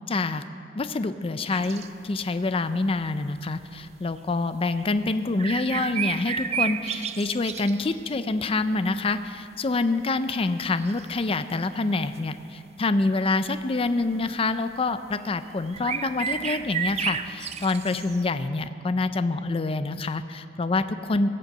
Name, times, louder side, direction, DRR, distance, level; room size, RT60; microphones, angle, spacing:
voice 1, 0.1-0.4 0.8-21.3, left 3 dB, 30° left, 11 dB, 0.4 m, -26 dB
sound 1, 1.5-1.9 3.9-4.0 4.8-4.9 5.4-8.2 8.8-9.3 9.8-9.9 10.8-11.2 11.8-12.2 14.0-14.2 15.3-15.4 15.6-18.2, right 7 dB, 35° right, 0.5 m, -31 dB
17.5 x 7.6 x 7.7 m, 2.5 s
head